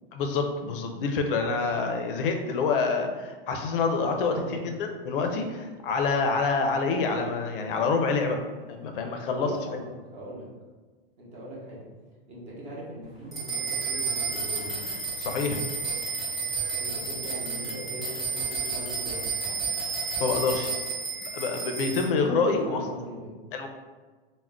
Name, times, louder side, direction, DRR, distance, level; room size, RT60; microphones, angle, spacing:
voice 1, 0.1-8.4 8.7-9.5 15.2-15.6 20.2-20.7 21.3-22.8 23.5-23.7, left 4 dB, 65° left, 5 dB, 0.5 m, -27 dB
voice 2, 9.3-10.5 11.2-11.8 12.3-14.9 16.8-19.6 22.4-23.4, equal, 25° right, -5 dB, 0.7 m, -40 dB
sound 1, 13.3-22.0, right 4 dB, ahead, 0.3 m, -31 dB
2.3 x 2.1 x 3.5 m, 1.3 s
supercardioid pair, 160°, 30 cm